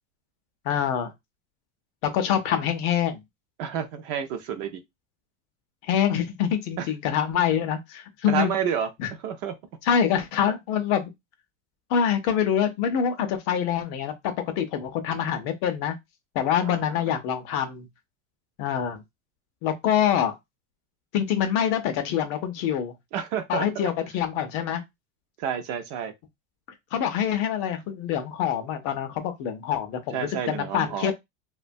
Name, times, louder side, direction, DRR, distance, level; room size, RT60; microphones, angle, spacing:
voice 1, 0.6-1.1 2.0-3.2 5.8-8.5 9.0-9.1 9.8-11.1 11.9-15.9 16.4-17.9 18.6-19.0 19.6-20.4 21.1-22.9 23.5-24.8 26.9-31.1, left 9 dB, 40° left, 0.4 m, -25 dB
voice 2, 3.6-4.8 6.8-6.9 8.3-8.9 9.2-9.5 16.6-17.0 23.1-23.9 25.4-26.1 30.1-31.1, right 8 dB, 45° right, 0.4 m, -30 dB
2.9 x 2.2 x 2.5 m
cardioid pair, 170°, 34 cm